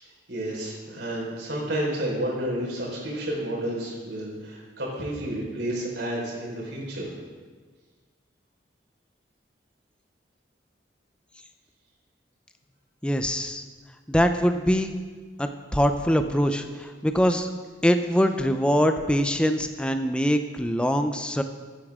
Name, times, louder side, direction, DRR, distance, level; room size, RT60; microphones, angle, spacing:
voice 1, 0.3-7.1, right 1 dB, 70° right, -4 dB, 4.3 m, -30 dB
voice 2, 13.0-13.6 14.1-14.9 15.4-17.5 17.8-21.4, equal, 5° left, 7 dB, 0.5 m, -23 dB
15.0 x 9.9 x 3.6 m, 1.5 s
head